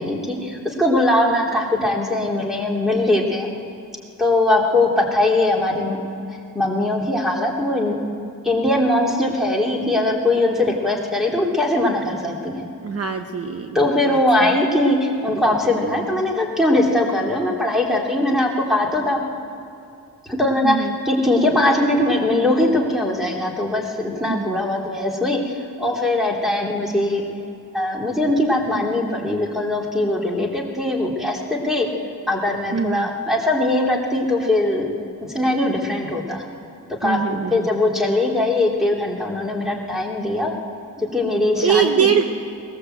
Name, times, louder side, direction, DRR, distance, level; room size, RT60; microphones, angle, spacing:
voice 1, 0.0-3.5 4.2-6.0 6.3-8.0 8.4-12.6 13.7-19.2 20.2-27.2 27.7-31.9 32.3-34.8 35.2-36.4 37.0-40.5 41.0-41.9, left 1 dB, ahead, -1 dB, 3.3 m, -21 dB
voice 2, 12.8-14.5 20.6-21.0 24.2-24.6 32.7-33.1 37.0-37.7 41.6-42.2, right 7 dB, 45° right, 6 dB, 1.0 m, -22 dB
19.5 x 19.5 x 8.0 m, 2.7 s
cardioid pair, 125°, 34 cm